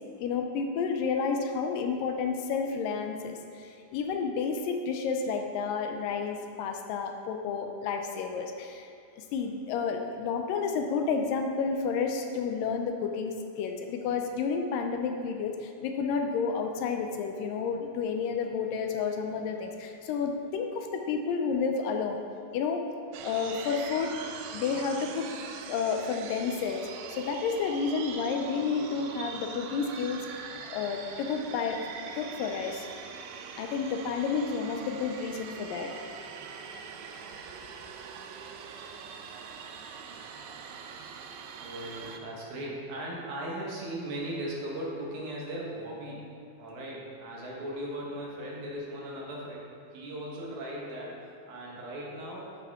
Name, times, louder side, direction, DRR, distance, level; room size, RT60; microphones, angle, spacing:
voice 1, 0.2-8.9 9.2-22.2 22.5-22.9 23.2-24.1 24.5-25.3 25.7-30.3 30.7-31.9 32.2-33.1 33.6-35.9, left 5 dB, 80° left, 4 dB, 2.1 m, -31 dB
sound 1, 23.1-42.2, right 6 dB, 80° right, 2.0 m, -43 dB
voice 2, 41.6-46.3 46.6-49.6 49.9-51.2 51.5-52.6, right 1 dB, 60° right, -3 dB, 2.5 m, -38 dB
10.5 x 8.2 x 3.6 m, 2.4 s
omnidirectional pair, 4.3 m